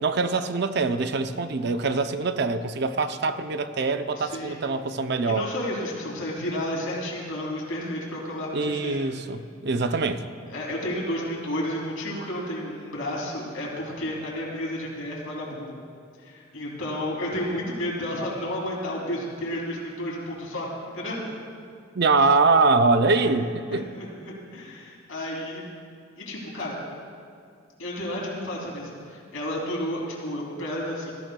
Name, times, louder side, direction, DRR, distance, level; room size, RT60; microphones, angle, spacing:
voice 1, 0.0-5.5 8.5-10.2 22.0-23.9, right 3 dB, 50° right, 10 dB, 0.5 m, -23 dB
voice 2, 4.2-4.6 5.2-9.1 10.5-15.7 16.2-20.7 20.9-21.3 23.1-23.2 23.7-25.7 26.2-26.8 27.8-31.1, left 1 dB, 80° left, -3 dB, 2.9 m, -32 dB
19.5 x 14.0 x 2.3 m, 2.3 s
head